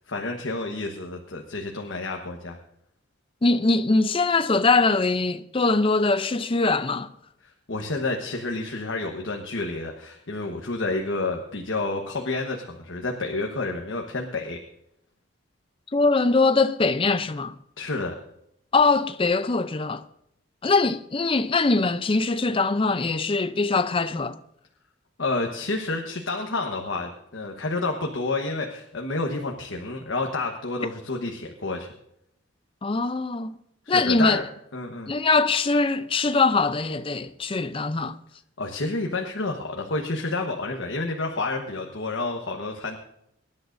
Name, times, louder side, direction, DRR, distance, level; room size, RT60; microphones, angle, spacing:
voice 1, 0.1-2.6 7.4-14.6 17.8-18.1 25.2-31.9 33.9-34.4 34.7-35.1 38.6-43.0, left 3 dB, 70° left, 1.2 m, -29 dB
voice 2, 3.4-7.1 15.9-17.6 18.7-20.0 20.6-24.4 32.8-33.6 33.9-34.4 35.1-38.2, left 3 dB, 25° left, 0.5 m, -22 dB
24.5 x 11.0 x 2.6 m
head